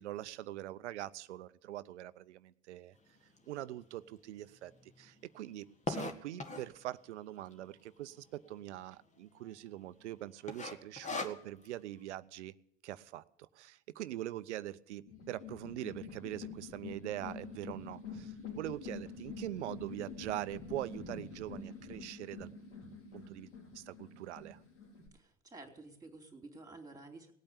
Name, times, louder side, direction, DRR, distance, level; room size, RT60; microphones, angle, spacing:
voice 1, 0.0-2.9 3.5-12.5 12.8-22.5 23.1-23.5 23.7-24.6, right 14 dB, 70° right, 15 dB, 0.7 m, -43 dB
sound 1, 3.4-3.5 4.0-4.1 4.3-4.4 4.7-6.8 7.5-7.9 8.2-8.3 8.5-8.6 9.2-9.5 9.8-10.1 10.5-11.7, left 3 dB, 20° left, 1.6 m, -39 dB
sound 2, 15.1-25.1, left 4 dB, 75° left, 3.9 m, -47 dB
voice 2, 25.1-27.3, right 2 dB, 10° right, 4 dB, 3.3 m, -52 dB
18.5 x 8.6 x 8.4 m, 0.71 s
figure-of-eight pair, 70°, 36 cm